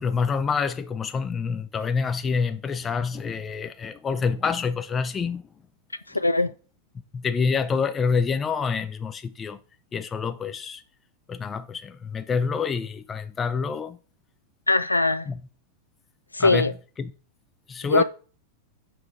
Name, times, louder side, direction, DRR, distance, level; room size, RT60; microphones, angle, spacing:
voice 1, 0.0-5.5 7.1-9.6 9.9-10.8 11.3-14.0 15.3-15.4 16.4-16.7 17.0-17.1 17.7-18.0, left 5 dB, 20° left, 0.5 m, -27 dB
voice 2, 6.1-6.5 14.7-15.3 16.3-16.7 17.9-18.0, left 2 dB, 85° left, 0.3 m, -21 dB
5.9 x 4.9 x 5.0 m
figure-of-eight pair, 90°, 0 cm